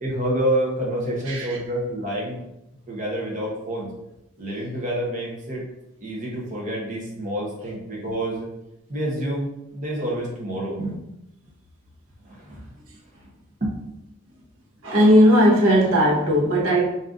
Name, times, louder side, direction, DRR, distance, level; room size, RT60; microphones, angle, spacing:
voice 1, 0.0-2.4 2.9-3.9 4.4-5.6 6.0-8.5 8.9-10.8 12.2-12.7 13.6-13.8, right 1 dB, 35° right, -4 dB, 0.8 m, -28 dB
voice 2, 1.3-1.6 7.6-7.7 10.8-11.0 14.8-16.9, equal, 65° right, -3 dB, 0.9 m, -17 dB
4.0 x 3.8 x 2.5 m, 0.87 s
head